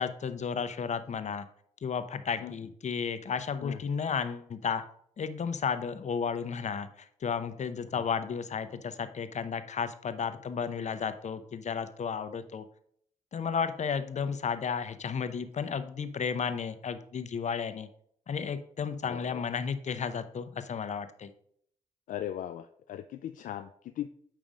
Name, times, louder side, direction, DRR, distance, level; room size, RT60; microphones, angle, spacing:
voice 1, 0.0-1.5 1.8-4.8 5.2-12.6 13.3-17.9 18.3-21.3, left 6 dB, 55° left, 11 dB, 0.8 m, -33 dB
voice 2, 19.0-19.4 22.1-24.1, left 11 dB, 75° left, 9 dB, 0.4 m, -38 dB
9.0 x 3.3 x 5.0 m, 0.65 s
supercardioid pair, 55°, 14 cm